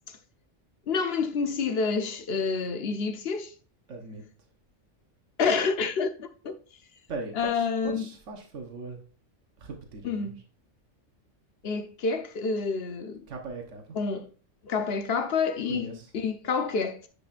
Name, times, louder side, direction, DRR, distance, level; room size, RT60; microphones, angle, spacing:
voice 1, 0.9-3.5 5.4-6.6 7.3-8.1 10.0-10.4 11.6-13.2 14.0-14.3 14.6-17.1, left 5 dB, 60° left, 1.0 m, -28 dB
voice 2, 3.9-4.2 7.1-9.0 9.6-10.3 13.3-14.0 15.7-16.1, right 3 dB, 80° right, 1.5 m, -39 dB
9.7 x 5.3 x 2.5 m
omnidirectional pair, 1.2 m